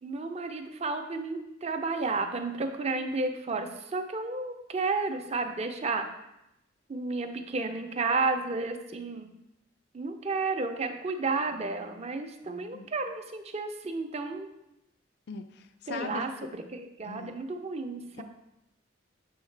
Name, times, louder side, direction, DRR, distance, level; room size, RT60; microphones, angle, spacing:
voice 1, 0.0-6.1 6.9-9.3 9.9-14.5 15.9-18.2, right 3 dB, 35° right, 6 dB, 0.5 m, -32 dB
voice 2, 15.3-16.2 17.0-17.4 18.2-18.3, left 4 dB, 55° left, 9 dB, 0.3 m, -40 dB
7.0 x 4.7 x 3.3 m, 0.87 s
head